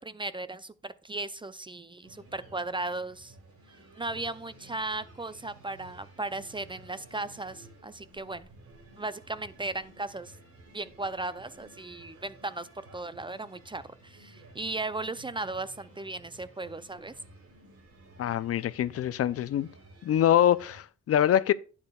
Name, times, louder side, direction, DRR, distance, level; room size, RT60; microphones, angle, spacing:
voice 1, 0.0-3.3 4.0-8.5 9.0-10.4 10.7-12.7 12.9-17.1, right 2 dB, 15° right, 0.5 m, -36 dB
sound 1, 2.0-20.8, right 2 dB, 75° right, 5.7 m, -54 dB
voice 2, 18.2-19.7 20.0-21.5, left 11 dB, 50° left, 0.5 m, -24 dB
11.5 x 8.8 x 2.3 m
cardioid pair, 90°, 30 cm